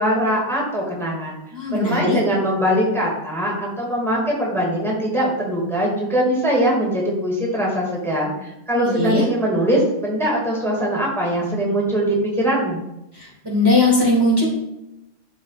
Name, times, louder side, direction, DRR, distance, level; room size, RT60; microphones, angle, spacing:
voice 1, 0.0-1.4 1.7-12.8, equal, ahead, -3 dB, 1.9 m, -22 dB
voice 2, 1.5-2.2 8.7-9.2 13.1-14.5, left 2 dB, 20° right, -4 dB, 1.9 m, -19 dB
12.5 x 5.1 x 2.4 m, 0.87 s
omnidirectional pair, 1.4 m